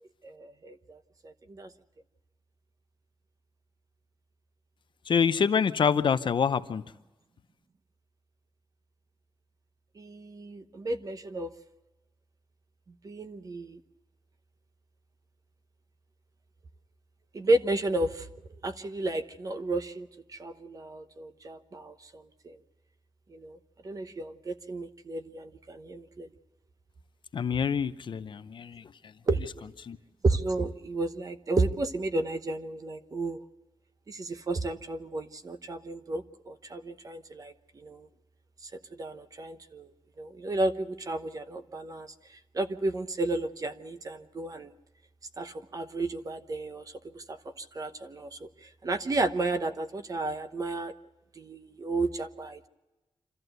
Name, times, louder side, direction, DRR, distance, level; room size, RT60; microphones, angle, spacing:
voice 1, 0.2-1.0 1.2-1.7 10.0-11.5 13.0-13.8 17.3-18.3 18.6-22.6 23.3-23.6 23.8-26.3 29.3-29.6 30.2-33.4 34.1-38.1 38.9-39.9 40.2-42.1 42.5-44.7 45.4-46.8 47.1-48.5 48.8-50.9 51.4-52.7, right 2 dB, 40° right, 9 dB, 1.0 m, -32 dB
voice 2, 5.1-6.8 27.3-29.1 29.8-30.0, left 6 dB, 55° left, 11 dB, 0.7 m, -26 dB
26.5 x 14.0 x 8.0 m, 1.1 s
wide cardioid pair, 180°, 10 cm